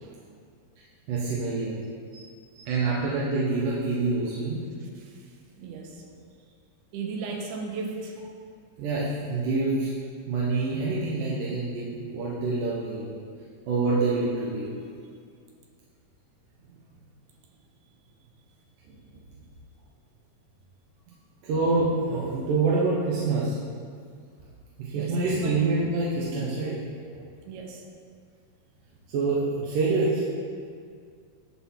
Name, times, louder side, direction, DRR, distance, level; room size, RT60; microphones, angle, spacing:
voice 1, 1.1-1.8 2.7-4.7 8.8-9.9 10.3-13.2 13.7-14.7 18.9-19.0 21.4-23.6 24.8-26.8 27.1-27.2 29.1-30.3, right 3 dB, 70° right, -6 dB, 2.3 m, -26 dB
voice 2, 2.1-2.7 4.8-5.3 5.6-6.0 6.9-8.2 16.6-16.7 24.9-25.5 27.5-27.8, right 4 dB, 90° right, 1 dB, 2.9 m, -37 dB
10.0 x 4.1 x 5.6 m, 2.1 s
omnidirectional pair, 4.5 m